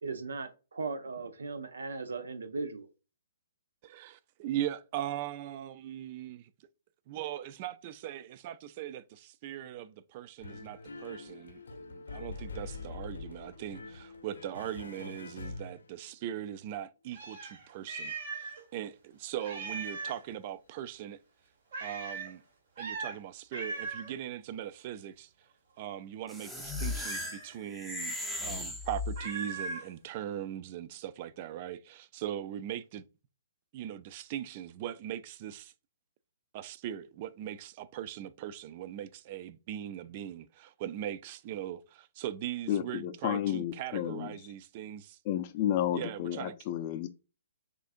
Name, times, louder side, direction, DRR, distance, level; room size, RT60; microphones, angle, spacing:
voice 1, 0.0-2.9, right 4 dB, 80° right, 0.7 m, -37 dB
voice 2, 3.8-6.5 7.1-11.6 11.9-21.2 21.8-22.4 22.8-25.3 25.8-33.0 33.7-35.7 36.5-45.2 45.9-46.5, right 11 dB, 40° right, 0.3 m, -40 dB
sound 1, 10.4-16.2, left 3 dB, 80° left, 0.9 m, -44 dB
Meow, 17.1-18.6 18.9-19.0 19.4-20.2 21.7-22.3 22.8-23.2 23.5-24.1 27.0-27.6 29.2-29.9, right 4 dB, 60° right, 1.5 m, -39 dB
sound 2, 26.3-29.5, left 2 dB, ahead, 0.7 m, -37 dB
voice 3, 42.7-44.3 45.3-47.1, left 11 dB, 40° left, 0.5 m, -31 dB
6.2 x 2.5 x 2.4 m
hypercardioid pair, 135°, 0 cm